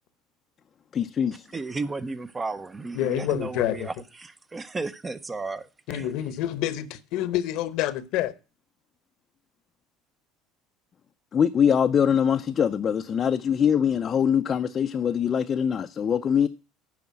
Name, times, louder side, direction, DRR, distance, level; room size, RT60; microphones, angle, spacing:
voice 1, 0.9-1.3 11.3-16.5, left 8 dB, 30° left, 0.5 m, -23 dB
voice 2, 1.5-3.9 4.2-6.1, right 3 dB, 15° right, 0.6 m, -33 dB
voice 3, 2.9-3.9 5.9-8.3, left 12 dB, 60° left, 0.9 m, -27 dB
9.4 x 5.0 x 7.4 m
supercardioid pair, 130°, 0 cm